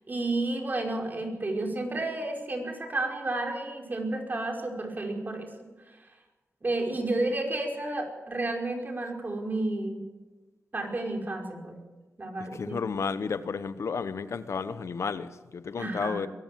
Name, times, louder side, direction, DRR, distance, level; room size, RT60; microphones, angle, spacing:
voice 1, 0.1-5.5 6.6-10.0 10.7-11.8 12.2-12.8 15.8-16.3, right 2 dB, 40° right, 1 dB, 5.2 m, -31 dB
voice 2, 12.5-16.3, left 5 dB, 70° left, 13 dB, 1.0 m, -32 dB
23.0 x 15.0 x 7.6 m, 1.2 s
cardioid pair, 70°, 5 cm